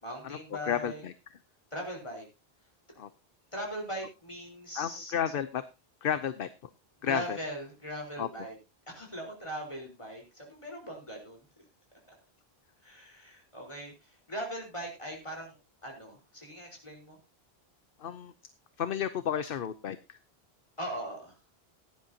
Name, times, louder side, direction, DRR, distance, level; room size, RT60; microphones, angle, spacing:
voice 1, 0.0-1.0 1.7-2.2 3.5-5.1 7.0-8.6 8.9-11.6 12.1-12.2 12.8-15.6 15.8-17.2 20.8-21.4, equal, 30° left, 0 dB, 4.6 m, -40 dB
voice 2, 0.6-1.1 3.0-3.1 4.7-5.6 6.0-6.5 7.0-7.4 8.2-8.3 18.0-18.3 18.8-20.2, left 8 dB, 65° left, 12 dB, 0.9 m, -32 dB
16.5 x 10.5 x 2.8 m, 0.27 s
omnidirectional pair, 1.0 m